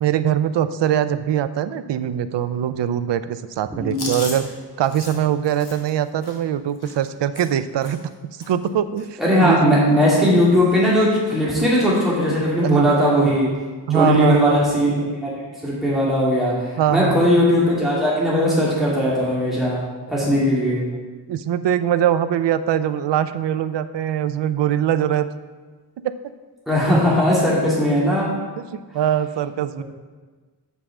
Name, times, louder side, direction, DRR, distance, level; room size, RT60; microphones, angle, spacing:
voice 1, 0.0-4.5 4.8-8.0 8.5-9.8 12.6-12.9 13.9-14.6 16.8-17.3 20.1-20.2 20.9-21.0 21.3-25.3 26.0-26.2 28.7-29.8, right 10 dB, 85° right, 13 dB, 0.5 m, -22 dB
voice 2, 3.8-4.1 9.2-13.5 13.9-15.3 15.6-16.5 16.9-19.8 20.1-20.8 26.7-28.3 29.8-29.9, equal, ahead, -7 dB, 2.4 m, -18 dB
Chewing mastication, 3.9-8.1 8.4-8.7 9.0-9.9 10.1-10.4 10.7-11.4 11.8-11.9 13.0-13.4, left 3 dB, 65° left, 1.7 m, -37 dB
6.2 x 5.5 x 7.1 m, 1.4 s
wide cardioid pair, 105°, 41 cm